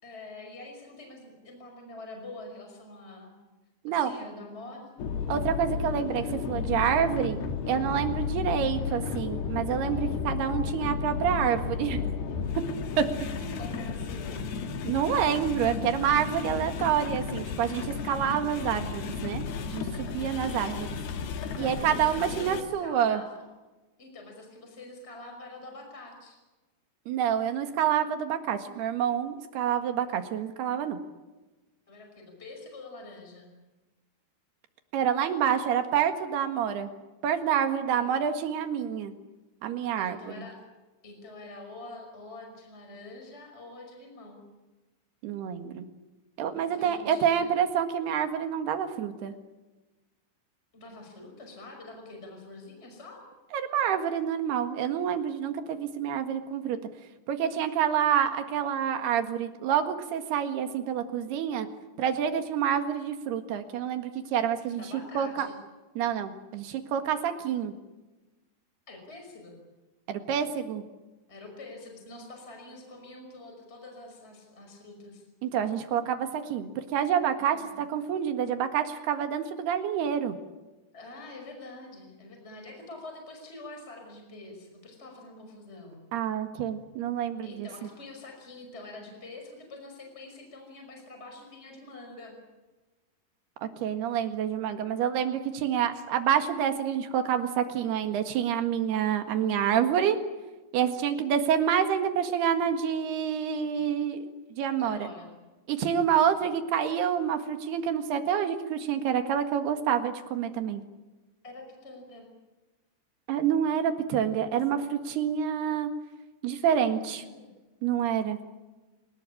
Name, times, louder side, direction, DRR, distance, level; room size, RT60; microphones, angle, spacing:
voice 1, 0.0-3.3 3.9-4.9 13.6-14.5 20.5-20.6 21.6-23.4 24.0-26.4 31.9-33.5 37.9-38.1 40.0-40.6 41.0-44.4 46.5-47.5 50.7-53.2 64.8-65.6 68.9-69.6 71.3-75.2 77.5-77.8 80.9-86.0 87.4-92.3 104.8-105.3 106.3-106.5 111.4-112.3 116.8-117.5, left 2 dB, 15° left, 3 dB, 5.4 m, -46 dB
sound 1, 5.0-22.6, left 6 dB, 65° left, 3.6 m, -33 dB
voice 2, 5.3-7.4 7.7-12.1 13.0-13.6 14.8-19.4 19.7-21.0 21.6-23.2 27.1-31.0 34.9-36.9 37.2-39.1 39.6-40.4 45.2-45.9 46.4-49.3 53.5-56.8 57.3-61.7 62.0-64.9 65.2-65.5 66.0-67.7 70.1-70.8 75.4-80.4 86.1-87.7 93.6-100.2 100.7-104.3 104.6-105.1 105.7-110.8 113.3-115.9 116.4-117.2 117.8-118.4, right 8 dB, 65° right, 7 dB, 3.6 m, -28 dB
28.0 x 19.0 x 8.6 m, 1.2 s
omnidirectional pair, 5.1 m